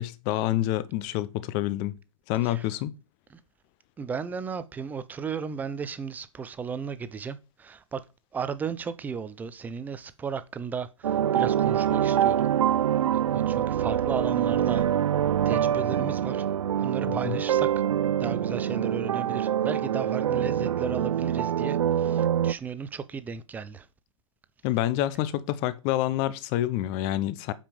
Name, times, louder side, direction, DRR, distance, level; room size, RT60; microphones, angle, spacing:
voice 1, 0.0-2.0 2.3-2.9 17.2-17.4 24.6-27.5, left 14 dB, 30° left, 0.7 m, -27 dB
voice 2, 4.0-8.0 8.3-12.5 13.1-14.8 15.5-16.5 16.8-17.7 18.2-23.9, right 6 dB, 10° right, 0.6 m, -35 dB
sound 1, 11.0-22.5, right 10 dB, 80° right, 0.4 m, -25 dB
8.8 x 5.3 x 5.0 m
hypercardioid pair, 140°, 17 cm